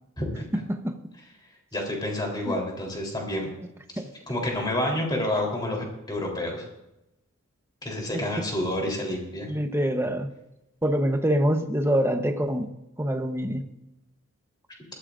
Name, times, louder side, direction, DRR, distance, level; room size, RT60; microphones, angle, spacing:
voice 1, 0.2-0.6 1.2-1.3 1.7-3.5 4.3-6.7 7.8-9.5, left 1 dB, 20° left, 0 dB, 3.5 m, -29 dB
voice 2, 9.5-10.3 10.8-12.7 13.0-13.6, equal, 10° right, 6 dB, 0.9 m, -25 dB
20.0 x 13.5 x 2.5 m, 0.90 s
head